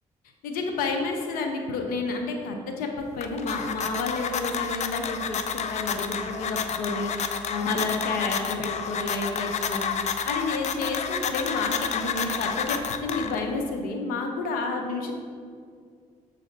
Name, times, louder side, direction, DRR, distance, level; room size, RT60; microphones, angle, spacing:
voice 1, 0.4-15.3, left 3 dB, 85° left, 3 dB, 0.8 m, -30 dB
sound 1, 3.0-13.6, left 7 dB, 55° left, 0.4 m, -30 dB
7.3 x 2.8 x 5.2 m, 2.1 s
supercardioid pair, 70°, 14 cm